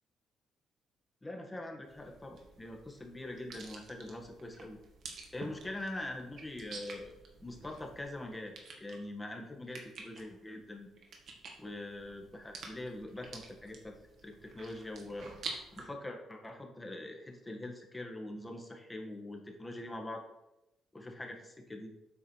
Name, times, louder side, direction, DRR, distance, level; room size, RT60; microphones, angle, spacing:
voice 1, 1.2-4.8 5.3-7.1 7.4-10.9 11.6-14.0 14.2-15.3 15.7-20.2 20.9-21.9, left 1 dB, 15° left, 2 dB, 1.6 m, -43 dB
sound 1, 1.9-15.8, right 4 dB, 65° right, 1.8 m, -49 dB
8.5 x 4.8 x 4.7 m, 0.89 s
cardioid pair, 90°, 0 cm